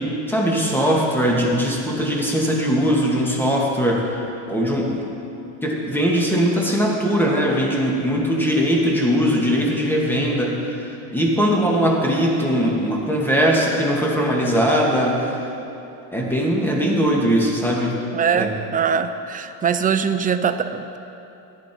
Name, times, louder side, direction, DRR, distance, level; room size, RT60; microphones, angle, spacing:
voice 1, 0.0-5.1 5.6-15.4 16.1-18.0 18.3-18.5, equal, 5° left, -2 dB, 2.3 m, -20 dB
voice 2, 18.1-21.0, right 7 dB, 20° right, 9 dB, 0.6 m, -22 dB
14.5 x 10.5 x 4.6 m, 2.9 s
cardioid pair, 110°, 38 cm